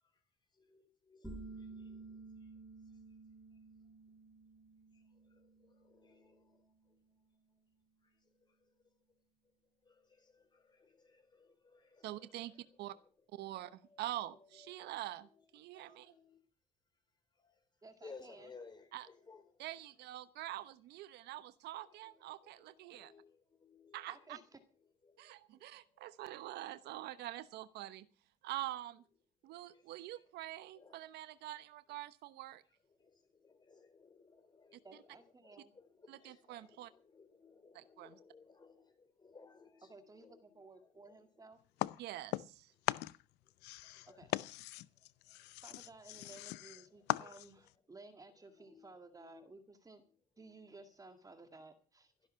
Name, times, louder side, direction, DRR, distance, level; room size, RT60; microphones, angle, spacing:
voice 1, 0.5-2.5 4.9-7.0 8.0-8.9 9.8-13.0 13.4-16.4 17.3-17.6 18.0-20.1 21.1-21.4 21.7-24.4 25.0-26.0 27.2-27.3 29.4-30.3 30.7-31.1 32.9-41.3 43.8-44.3 44.7-45.5 46.1-46.2 46.7-47.7 48.5-49.5 50.4-50.6, left 4 dB, 25° left, 5.0 m, -62 dB
sound 1, 1.2-6.6, right 3 dB, ahead, 5.7 m, -53 dB
voice 2, 12.0-12.5 12.8-12.9 13.3-16.1 18.9-19.1 19.6-23.1 23.9-24.4 25.2-28.1 28.4-29.0 29.4-32.6 34.7-34.8 36.1-36.9 37.7-38.2 42.0-42.7, right 15 dB, 80° right, 1.0 m, -45 dB
voice 3, 17.8-18.5 24.1-24.6 34.8-35.7 39.9-41.6 44.1-44.3 45.6-50.0 50.4-52.3, right 3 dB, 20° right, 1.9 m, -56 dB
sound 2, 41.8-42.6 42.8-47.7, left 18 dB, 90° left, 0.6 m, -40 dB
14.0 x 12.0 x 5.8 m
cardioid pair, 110°, 17 cm